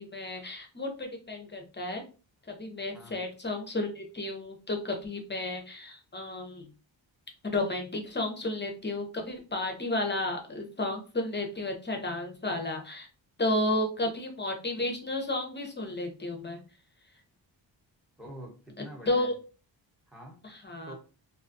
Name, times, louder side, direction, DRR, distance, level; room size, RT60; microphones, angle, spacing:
voice 1, 0.0-2.0 2.5-6.7 7.4-13.1 13.4-16.6 18.8-19.3 20.4-20.9, left 2 dB, 25° left, 3 dB, 0.6 m, -32 dB
voice 2, 18.2-19.3 20.1-20.4 20.9-21.0, right 1 dB, ahead, -2 dB, 1.0 m, -45 dB
2.6 x 2.2 x 2.6 m, 0.34 s
cardioid pair, 75°, 46 cm